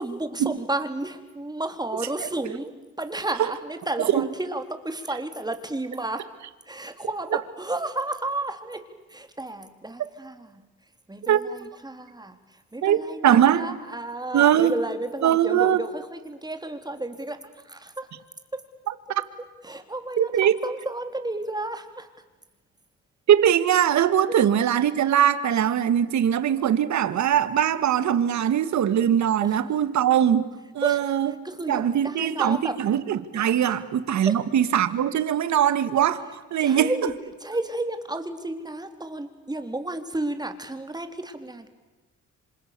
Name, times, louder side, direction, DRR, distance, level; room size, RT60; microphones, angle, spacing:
voice 1, 0.0-6.3 6.6-10.7 11.1-18.1 18.5-18.7 19.6-22.1 24.3-24.4 29.4-29.6 30.8-32.8 33.7-33.8 34.3-34.4 36.6-41.7, right 2 dB, 15° right, 8 dB, 3.7 m, -32 dB
voice 2, 12.8-13.7 14.3-14.7 15.2-15.8 20.2-20.5 23.3-30.5 30.7-31.3 31.7-36.9, right 10 dB, 65° right, 13 dB, 1.9 m, -21 dB
29.0 x 26.0 x 6.9 m, 1.2 s
cardioid pair, 90°, 30 cm